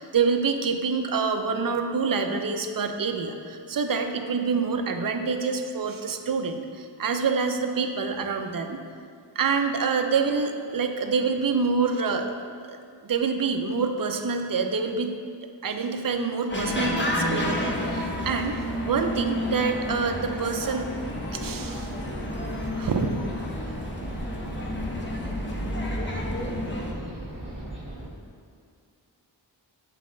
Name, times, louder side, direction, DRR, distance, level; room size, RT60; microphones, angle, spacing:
voice 1, 0.0-8.8 9.4-12.3 12.7-12.8 13.0-15.1 15.6-20.9 21.3-21.9 22.8-23.2, right 5 dB, 50° right, 6 dB, 0.6 m, -26 dB
sound 1, 16.5-26.9, left 1 dB, 25° left, 0.9 m, -30 dB
sound 2, 20.7-28.1, right 1 dB, 25° right, 1.6 m, -38 dB
7.5 x 4.1 x 3.8 m, 2.2 s
wide cardioid pair, 50°, 45 cm